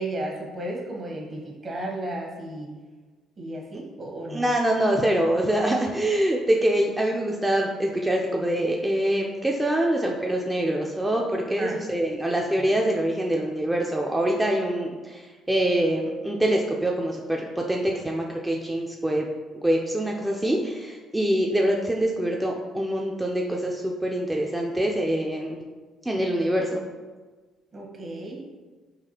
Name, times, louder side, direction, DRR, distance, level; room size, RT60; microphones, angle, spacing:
voice 1, 0.0-2.7 3.4-4.4 11.6-11.8 12.6-12.7 27.7-28.4, right 1 dB, 45° right, -1 dB, 0.9 m, -34 dB
voice 2, 4.3-19.3 19.6-25.6 26.1-26.8, right 1 dB, 10° right, -1 dB, 0.4 m, -25 dB
4.0 x 2.3 x 2.8 m, 1.3 s
hypercardioid pair, 55°, 0 cm